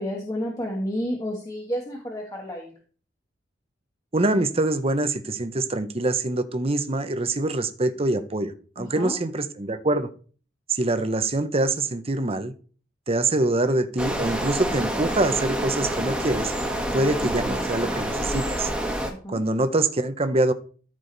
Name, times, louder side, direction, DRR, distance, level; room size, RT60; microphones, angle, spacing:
voice 1, 0.0-2.7 8.8-9.2 16.7-17.6 19.1-19.4, equal, 20° left, 1.4 m, -31 dB
voice 2, 4.1-10.1 10.7-12.5 13.1-16.5 16.9-18.7 19.3-20.5, right 2 dB, 30° right, 0.8 m, -24 dB
sound 1, 14.0-19.1, right 1 dB, 5° right, 1.5 m, -27 dB
14.0 x 4.9 x 4.0 m
head